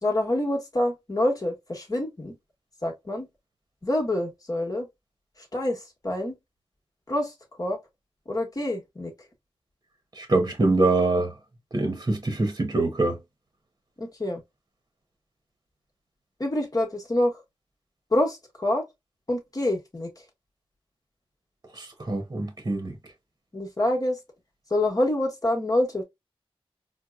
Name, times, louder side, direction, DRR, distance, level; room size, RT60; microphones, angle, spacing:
voice 1, 0.0-2.3 2.8-3.3 3.8-4.9 5.4-6.4 7.1-7.3 7.6-7.8 8.3-9.1 14.0-14.4 16.4-17.4 18.1-18.8 19.3-20.1 23.5-24.2 24.7-26.0, left 1 dB, 35° left, 1.3 m, -26 dB
voice 2, 10.1-11.3 11.7-13.2 21.7-23.0, right 2 dB, 35° right, 0.9 m, -24 dB
4.4 x 2.2 x 2.3 m
wide cardioid pair, 70°, 10 cm